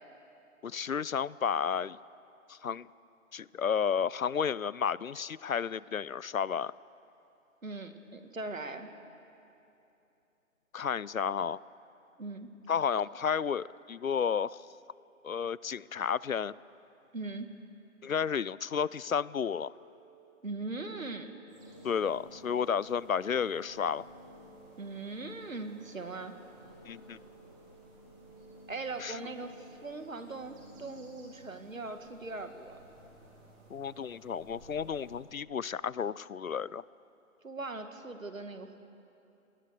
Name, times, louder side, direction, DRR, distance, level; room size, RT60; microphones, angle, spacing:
voice 1, 0.6-2.0 2.5-2.9 3.3-6.7 10.7-11.6 12.7-14.6 15.2-16.5 18.0-19.7 21.8-24.1 26.9-27.2 29.0-29.2 33.7-36.8, left 7 dB, 70° left, 21 dB, 0.6 m, -32 dB
voice 2, 7.6-8.9 12.2-12.5 17.1-17.5 20.4-21.3 24.8-26.4 28.7-32.8 37.4-38.8, right 3 dB, 65° right, 7 dB, 2.2 m, -40 dB
sound 1, 19.8-29.8, right 3 dB, 25° left, 3.6 m, -58 dB
sound 2, 21.5-35.2, equal, 15° right, 4.0 m, -55 dB
29.5 x 20.0 x 6.7 m, 2.8 s
figure-of-eight pair, 150°, 42 cm